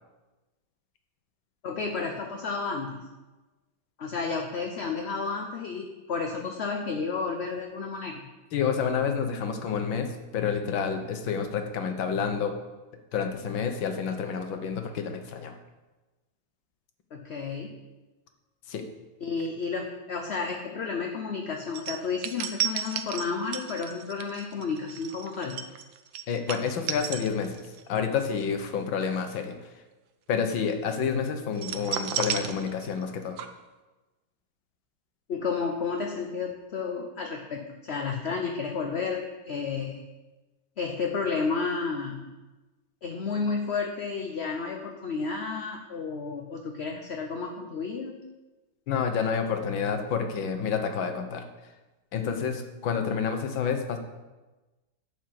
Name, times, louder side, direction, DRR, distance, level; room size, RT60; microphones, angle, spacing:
voice 1, 1.6-3.1 4.0-8.3 17.1-17.8 19.2-25.6 35.3-40.0 40.8-42.3 43.0-48.2, left 5 dB, 50° left, 3 dB, 0.8 m, -32 dB
voice 2, 8.5-10.1 10.3-12.5 13.1-15.6 18.7-18.8 26.3-29.6 30.3-33.4 48.9-51.5 52.1-54.0, left 6 dB, 90° left, 6 dB, 1.9 m, -29 dB
sound 1, 21.7-27.8 28.2-28.4 31.6-33.1 33.4-33.5, right 9 dB, 80° right, 1.5 m, -33 dB
11.5 x 5.5 x 7.7 m, 1.2 s
omnidirectional pair, 2.0 m